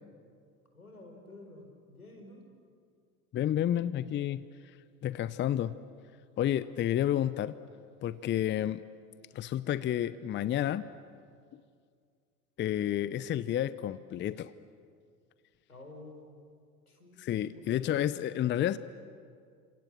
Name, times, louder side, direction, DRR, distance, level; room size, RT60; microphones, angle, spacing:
voice 1, 0.7-2.4 15.7-16.4 16.9-18.0, left 2 dB, 85° left, 3 dB, 4.6 m, -51 dB
voice 2, 3.3-4.4 5.0-5.8 6.4-7.6 8.0-8.8 9.3-10.9 12.6-14.5 17.2-18.8, left 11 dB, 25° left, 16 dB, 0.7 m, -30 dB
29.5 x 26.5 x 7.5 m, 2.2 s
figure-of-eight pair, 75°, 43 cm